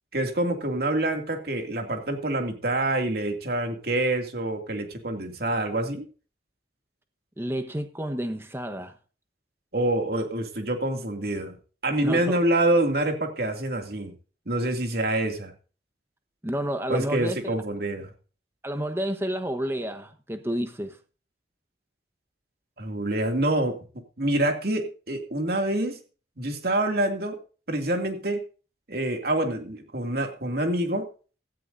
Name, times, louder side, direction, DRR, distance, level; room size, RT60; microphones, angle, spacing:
voice 1, 0.1-6.1 9.7-11.6 11.8-14.1 14.5-15.5 16.9-18.1 22.8-23.8 24.2-26.0 26.4-27.4 27.7-28.4 28.9-31.1, right 1 dB, 55° right, 2.6 m, -26 dB
voice 2, 7.4-8.9 12.0-12.4 16.4-17.5 18.6-21.0, equal, 15° right, 1.2 m, -30 dB
16.5 x 13.5 x 2.7 m
head